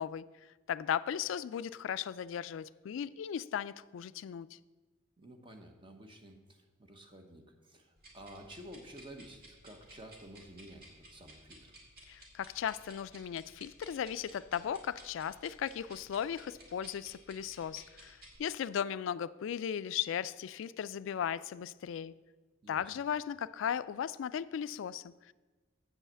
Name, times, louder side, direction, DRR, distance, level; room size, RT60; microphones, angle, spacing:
voice 1, 0.0-4.6 12.1-22.2 22.7-25.3, left 8 dB, 75° left, 0.3 m, -37 dB
voice 2, 5.2-11.7 22.6-22.8, equal, 25° right, 0.8 m, -52 dB
sound 1, 8.0-18.4, right 1 dB, 50° right, 2.2 m, -57 dB
7.7 x 5.6 x 7.4 m
head